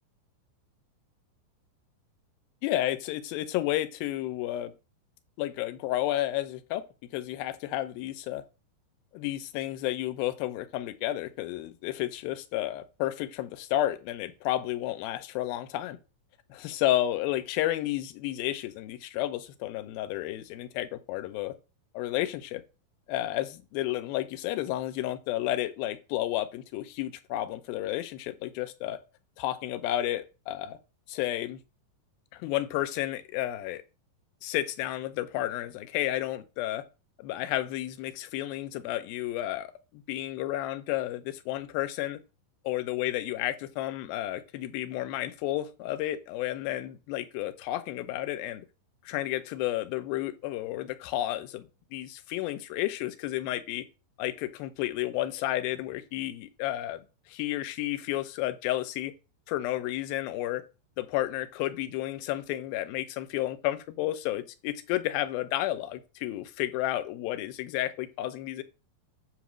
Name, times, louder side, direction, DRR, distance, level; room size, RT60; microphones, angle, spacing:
voice 1, 2.6-4.7 5.4-6.8 7.1-8.4 9.1-16.0 16.5-21.5 21.9-22.6 23.1-29.0 29.4-30.8 31.1-31.6 32.3-33.8 34.4-36.8 37.2-39.7 39.9-42.2 42.7-48.7 49.1-51.7 51.9-53.9 54.2-57.0 57.3-59.1 59.5-60.6 61.0-68.6, left 14 dB, 90° left, 2.5 m, -31 dB
7.7 x 3.0 x 6.1 m
omnidirectional pair, 4.1 m